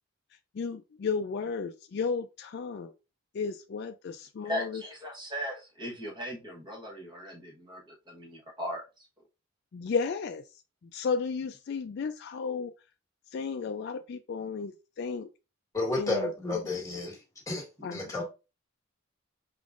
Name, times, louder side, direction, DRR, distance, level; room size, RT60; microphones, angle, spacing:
voice 1, 0.5-2.9 3.3-4.8 9.7-10.4 10.8-12.7 13.3-15.3 15.9-16.6 17.8-18.1, left 5 dB, 50° left, 0.3 m, -33 dB
voice 2, 4.4-9.1 17.8-17.9, equal, 20° right, 1.1 m, -38 dB
voice 3, 15.7-17.2 17.5-17.7 17.9-18.2, left 2 dB, 15° left, 1.3 m, -31 dB
5.1 x 3.6 x 2.4 m
head